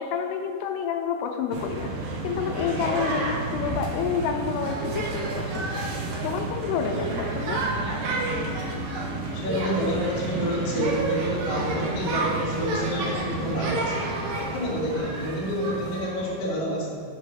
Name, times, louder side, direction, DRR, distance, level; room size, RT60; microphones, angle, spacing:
voice 1, 0.0-1.9 2.2-5.8 6.2-7.6, left 7 dB, 90° left, 5 dB, 2.6 m, -29 dB
sound 1, 1.5-16.4, right 2 dB, 70° right, 2.3 m, -30 dB
voice 2, 9.3-13.9 14.5-17.0, equal, 50° left, -6 dB, 2.3 m, -28 dB
6.6 x 4.7 x 6.2 m, 2.3 s
omnidirectional pair, 4.4 m